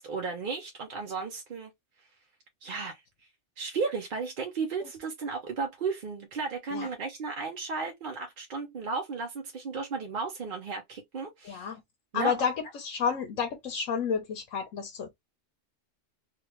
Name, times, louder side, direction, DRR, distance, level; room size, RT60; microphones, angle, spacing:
voice 1, 0.0-1.7 2.6-3.0 3.6-11.7 12.1-12.3, right 4 dB, 50° right, 0.7 m, -34 dB
voice 2, 11.4-11.8 12.1-15.1, left 6 dB, 85° left, 1.1 m, -30 dB
3.2 x 2.4 x 3.0 m
omnidirectional pair, 1.3 m